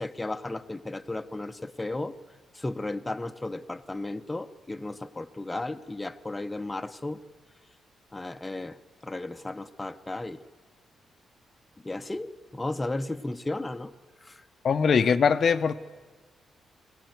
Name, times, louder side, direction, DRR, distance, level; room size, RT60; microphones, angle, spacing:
voice 1, 0.0-2.1 2.5-7.2 8.1-8.8 9.0-10.4 11.8-13.9 14.2-14.4, left 2 dB, 15° left, 0.7 m, -34 dB
voice 2, 14.6-15.7, left 6 dB, 55° left, 0.7 m, -21 dB
23.0 x 17.5 x 9.3 m
cardioid pair, 115°, 0 cm